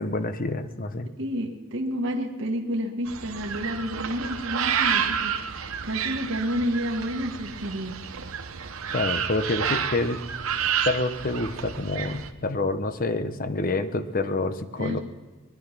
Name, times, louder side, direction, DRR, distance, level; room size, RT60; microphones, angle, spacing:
voice 1, 0.0-1.1 8.9-10.2 10.8-15.0, left 2 dB, 40° left, 10 dB, 0.9 m, -27 dB
voice 2, 1.2-8.6 14.8-15.0, equal, 60° right, 2 dB, 1.5 m, -30 dB
sound 1, 3.1-12.3, right 7 dB, 80° right, 0.9 m, -30 dB
21.0 x 11.5 x 5.9 m, 1.3 s
head